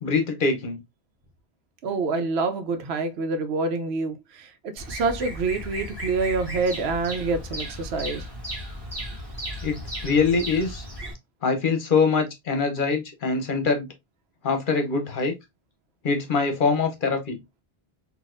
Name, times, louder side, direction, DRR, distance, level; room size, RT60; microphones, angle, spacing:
voice 1, 0.0-0.8 9.6-10.8 11.4-13.9 14.4-15.3 16.0-17.4, left 4 dB, 55° left, 0.9 m, -23 dB
voice 2, 1.8-8.2, right 3 dB, 85° right, 0.9 m, -27 dB
Bird vocalization bird call bird song, 4.8-11.1, equal, 25° right, 1.2 m, -35 dB
3.9 x 2.5 x 2.5 m
omnidirectional pair, 1.0 m